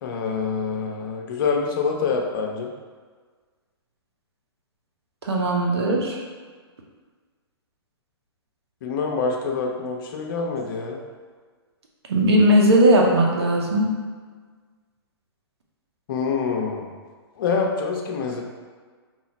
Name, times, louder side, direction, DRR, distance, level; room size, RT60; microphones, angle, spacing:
voice 1, 0.0-2.7 8.8-11.0 16.1-16.9 17.4-18.4, left 5 dB, 50° left, 1 dB, 0.6 m, -26 dB
voice 2, 5.3-6.2 12.1-13.9, right 1 dB, 75° right, -1 dB, 0.8 m, -18 dB
2.9 x 2.3 x 4.1 m, 1.5 s
hypercardioid pair, 135°, 14 cm